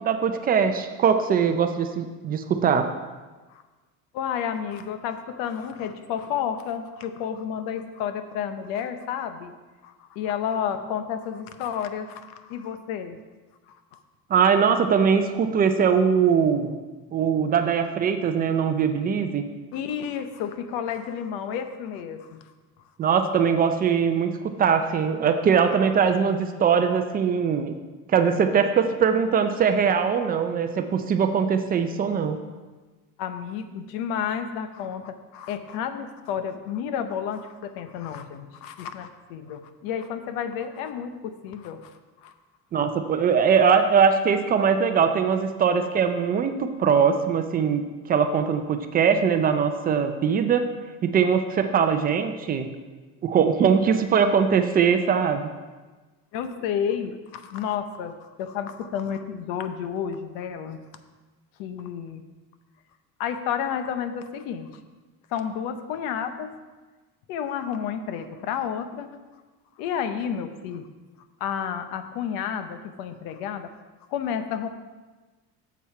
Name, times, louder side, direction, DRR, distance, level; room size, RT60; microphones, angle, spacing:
voice 1, 0.0-2.9 14.3-16.8 17.1-19.4 23.0-27.8 28.1-32.4 42.7-47.8 48.1-50.7 51.0-52.7 53.2-55.5, right 6 dB, 25° right, 8 dB, 0.4 m, -21 dB
voice 2, 4.1-9.5 9.8-13.2 13.7-14.0 19.7-22.4 33.2-42.3 56.3-60.8 61.6-62.2 63.2-64.8 65.3-66.5 67.3-69.1 69.8-70.9 71.4-73.7 74.1-74.7, left 8 dB, 85° left, 9 dB, 0.8 m, -31 dB
7.2 x 7.1 x 4.8 m, 1.3 s
cardioid pair, 160°, 34 cm